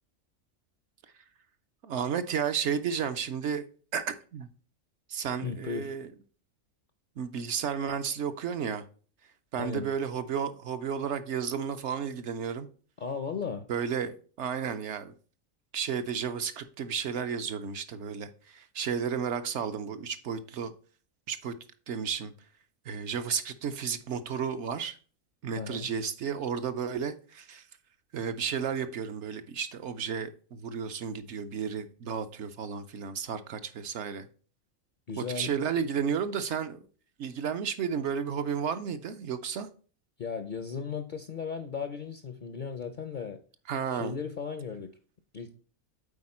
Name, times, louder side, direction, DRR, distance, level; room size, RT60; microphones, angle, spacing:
voice 1, 1.8-3.6 3.9-4.5 5.1-6.1 7.2-8.8 9.5-12.7 13.7-15.1 15.7-20.7 21.3-21.5 21.9-22.3 22.9-25.0 25.4-27.6 28.1-34.3 35.2-36.8 37.2-39.7 43.7-44.1, right 7 dB, 65° right, 0.8 m, -32 dB
voice 2, 5.4-5.9 9.6-9.9 13.0-13.7 25.6-25.9 35.1-35.5 40.2-43.4 43.9-44.9 45.3-45.6, left 6 dB, 55° left, 0.6 m, -36 dB
8.6 x 4.2 x 4.2 m
omnidirectional pair, 1.4 m